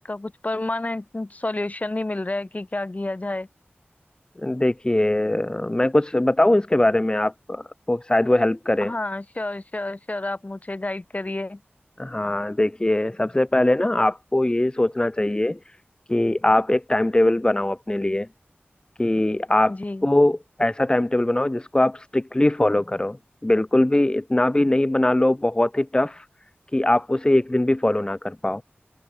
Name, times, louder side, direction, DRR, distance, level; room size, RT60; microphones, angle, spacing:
voice 1, 0.0-3.5 8.8-11.6 19.7-20.0, left 2 dB, 35° left, 4.7 m, -29 dB
voice 2, 4.4-8.9 12.0-15.6 16.1-18.3 19.0-19.7 20.0-23.2 23.4-26.2 26.7-28.6, left 1 dB, 20° left, 0.8 m, -21 dB
open air
wide cardioid pair, 75°, 4 cm